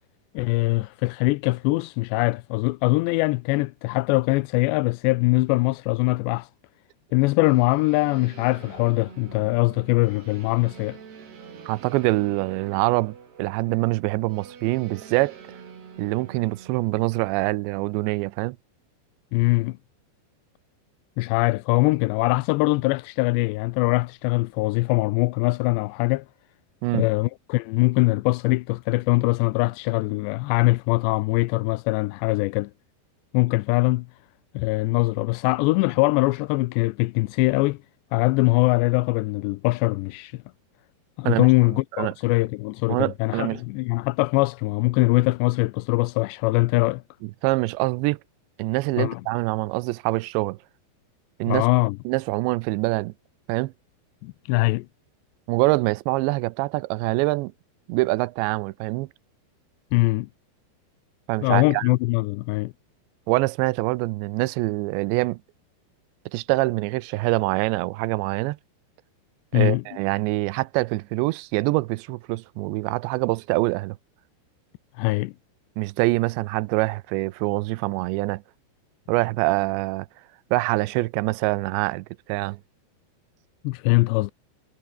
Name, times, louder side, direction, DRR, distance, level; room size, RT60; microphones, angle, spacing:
voice 1, 0.3-6.5 7.1-11.0 19.3-19.8 21.2-26.3 26.9-32.7 33.3-34.1 34.5-37.8 38.1-40.4 41.2-47.0 49.0-49.2 51.5-52.0 54.2-54.9 59.9-60.3 61.4-62.7 69.5-69.8 75.0-75.3 83.6-84.3, left 22 dB, 85° left, 2.8 m, -22 dB
sound 1, 7.4-16.9, right 7 dB, 65° right, 6.2 m, -45 dB
voice 2, 11.7-15.4 16.0-18.6 26.8-27.1 41.3-41.5 42.0-42.1 42.9-43.6 47.2-48.2 48.6-50.6 51.4-51.7 52.1-53.1 53.5-53.7 55.5-57.5 57.9-59.1 61.3-61.9 63.3-65.4 66.3-68.6 69.5-74.0 75.8-78.4 79.1-80.1 80.5-82.6, right 22 dB, 90° right, 3.0 m, -25 dB
omnidirectional pair, 5.0 m